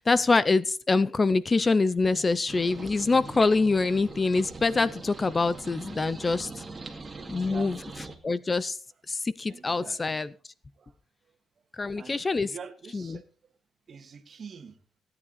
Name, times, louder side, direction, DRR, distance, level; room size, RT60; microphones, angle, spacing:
voice 1, 0.0-6.6 7.3-7.8 8.2-8.8 9.1-10.3 11.8-12.5 12.9-13.2, left 3 dB, 25° left, 18 dB, 0.5 m, -25 dB
sound 1, 2.5-8.1, right 3 dB, 20° right, 2.3 m, -42 dB
voice 2, 7.2-8.0 8.4-8.5 9.5-10.0 10.8-10.9 12.0-13.2 13.9-14.8, right 6 dB, 45° right, 8 dB, 1.9 m, -45 dB
17.0 x 9.7 x 4.1 m, 0.38 s
cardioid pair, 110°, 0 cm